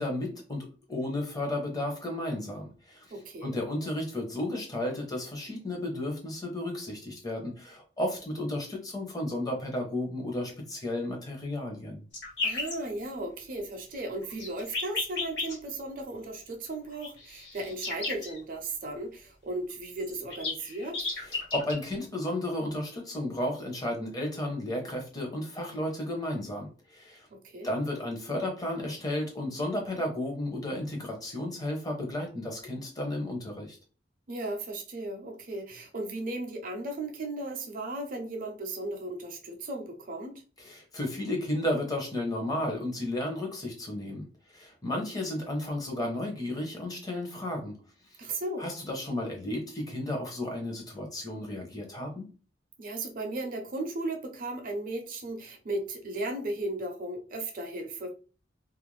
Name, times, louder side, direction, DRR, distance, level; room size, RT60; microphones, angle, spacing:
voice 1, 0.0-3.1 3.4-12.0 21.3-27.3 27.6-33.8 40.6-44.2 44.5-47.7 48.6-52.3, left 1 dB, 20° left, 0.8 m, -33 dB
voice 2, 3.1-3.6 12.4-21.1 27.3-27.7 34.3-40.4 48.2-48.7 52.8-58.1, right 2 dB, 50° right, 0.5 m, -36 dB
sound 1, 12.1-12.7 14.2-15.5 17.0-18.4 19.7-19.8 20.0-21.7, left 3 dB, 80° left, 1.2 m, -33 dB
2.4 x 2.1 x 3.1 m
head